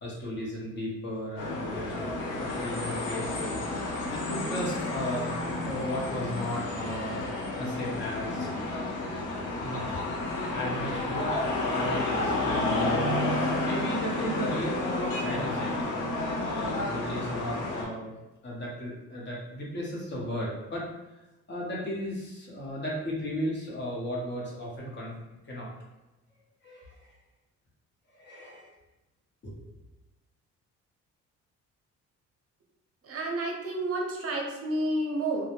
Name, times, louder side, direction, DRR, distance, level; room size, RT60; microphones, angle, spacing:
voice 1, 0.0-2.0 2.4-3.6 4.1-7.2 7.6-8.5 9.2-10.0 10.5-11.4 11.6-13.1 13.6-16.0 16.4-18.1 18.4-20.8 21.5-25.1 25.4-25.7 26.6-27.1 28.1-28.7 29.4-29.7, equal, 35° left, -4 dB, 0.9 m, -35 dB
sound 1, 1.4-17.8, left 2 dB, 85° left, 0.6 m, -31 dB
voice 2, 33.0-35.4, right 1 dB, 50° right, 1 dB, 0.6 m, -30 dB
2.3 x 2.0 x 2.9 m, 1.0 s
cardioid pair, 90°, 30 cm